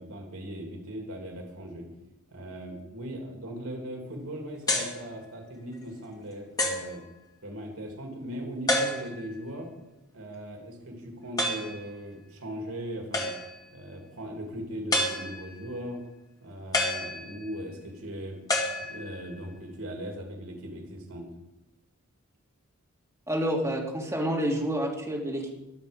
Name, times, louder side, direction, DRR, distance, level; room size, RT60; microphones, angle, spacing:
voice 1, 0.0-1.9 2.3-7.0 7.4-9.7 10.1-13.3 13.7-16.0 16.4-18.4 18.9-21.3, equal, 75° right, 1 dB, 3.0 m, -39 dB
sound 1, 4.7-5.0 5.7-5.8 6.6-6.9 8.7-9.3 11.4-11.8 13.1-13.6 14.9-15.6 16.7-17.6 18.5-19.3, left 1 dB, 15° left, 2.2 m, -29 dB
voice 2, 23.3-25.5, equal, 15° right, -2 dB, 2.8 m, -28 dB
21.5 x 7.7 x 5.3 m, 0.99 s
head